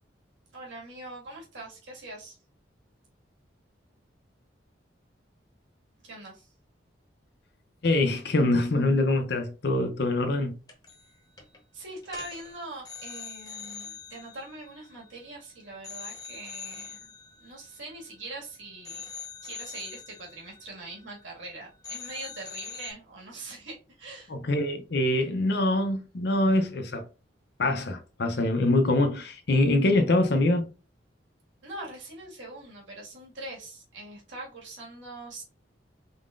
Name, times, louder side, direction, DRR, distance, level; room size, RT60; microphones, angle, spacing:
voice 1, 0.5-2.4 6.0-6.5 11.7-17.1 17.4-19.1 19.4-24.3 31.6-35.4, right 2 dB, 85° right, 1.9 m, -42 dB
voice 2, 7.8-10.6 24.3-27.1 27.6-30.7, left 2 dB, 60° left, 0.6 m, -24 dB
sound 1, 10.7-11.1 11.4-11.6 12.0-15.4 15.8-18.4 18.8-21.5 21.8-22.9, left 7 dB, 20° left, 0.9 m, -44 dB
4.1 x 3.7 x 2.5 m
head